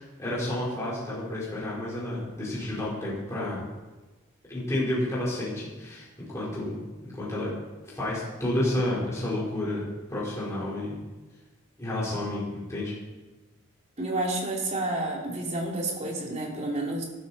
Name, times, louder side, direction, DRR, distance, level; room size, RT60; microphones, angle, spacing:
voice 1, 0.0-3.6 4.5-6.8 7.0-7.5 7.8-10.9 11.8-12.9, left 1 dB, 15° left, -8 dB, 4.3 m, -30 dB
voice 2, 14.0-17.0, right 2 dB, 30° right, -1 dB, 3.0 m, -30 dB
18.5 x 12.5 x 4.2 m, 1.2 s
head